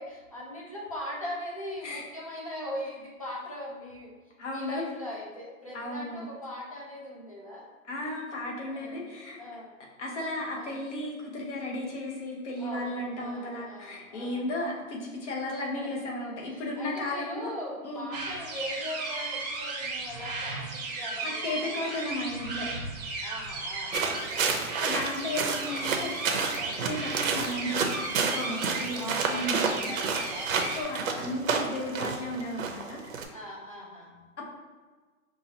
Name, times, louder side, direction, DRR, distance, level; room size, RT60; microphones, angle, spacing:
voice 1, 0.0-4.2 4.5-7.7 8.7-9.7 10.6-10.8 12.6-14.5 15.7-22.0 23.2-25.0 26.6-26.9 28.9-31.7 33.3-34.2, equal, 25° left, -4 dB, 0.4 m, -41 dB
voice 2, 4.4-4.8 5.7-6.3 7.9-9.4 10.0-18.1 21.2-22.7 24.8-27.9 28.2-30.0 30.6-33.2 34.4-34.5, left 1 dB, 55° left, -2 dB, 1.2 m, -34 dB
sound 1, 18.1-30.8, right 3 dB, 30° right, 0.7 m, -35 dB
sound 2, 23.9-33.2, right 5 dB, 65° right, 0.7 m, -30 dB
5.4 x 2.5 x 2.8 m, 1.4 s
hypercardioid pair, 165°, 43 cm